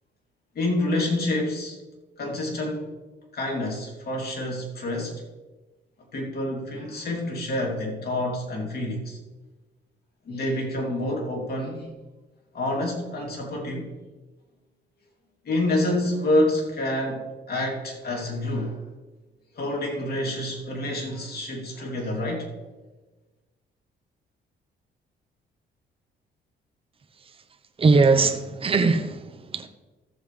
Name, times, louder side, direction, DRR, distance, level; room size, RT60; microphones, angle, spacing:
voice 1, 0.5-1.8 2.2-2.9 3.3-5.2 6.1-9.2 10.2-11.9 12.5-13.9 15.4-18.8 19.5-22.5, left 1 dB, 50° left, 0 dB, 2.8 m, -27 dB
voice 2, 27.8-29.7, right 4 dB, 30° right, 7 dB, 0.8 m, -21 dB
14.5 x 7.3 x 3.3 m, 1.2 s
cardioid pair, 90°, 20 cm